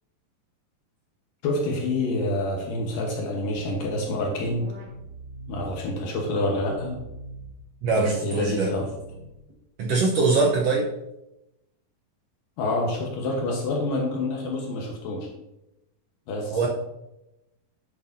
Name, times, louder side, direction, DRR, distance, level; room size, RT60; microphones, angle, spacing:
voice 1, 1.4-4.7 5.5-7.0 7.9-8.9 12.6-15.3 16.3-16.7, left 2 dB, 75° left, 0 dB, 2.8 m, -27 dB
sound 1, 3.8-5.7 6.2-7.5 7.9-9.5, right 1 dB, 55° right, 2.6 m, -42 dB
voice 2, 7.8-8.7 9.8-10.9 16.5-16.7, right 3 dB, 75° right, -1 dB, 1.5 m, -22 dB
11.0 x 8.4 x 2.7 m, 0.91 s
omnidirectional pair, 4.1 m